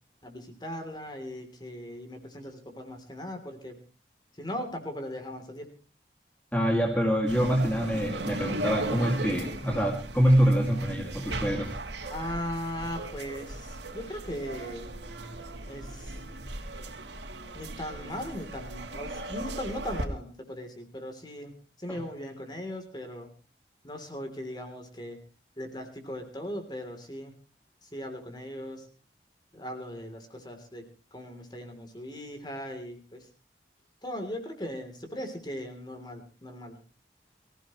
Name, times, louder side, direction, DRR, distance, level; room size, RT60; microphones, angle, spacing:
voice 1, 0.2-3.8 4.3-5.7 12.1-14.9 15.7-16.1 17.5-23.3 23.8-25.2 25.6-27.3 27.8-28.9 29.5-30.8 31.1-33.3 34.0-36.8, left 1 dB, 25° left, 5 dB, 3.3 m, -38 dB
voice 2, 6.5-11.7 21.9-22.0, equal, 10° left, 0 dB, 2.3 m, -25 dB
sound 1, 7.3-20.1, right 2 dB, 90° right, 2.6 m, -37 dB
24.0 x 16.0 x 3.2 m, 0.36 s
head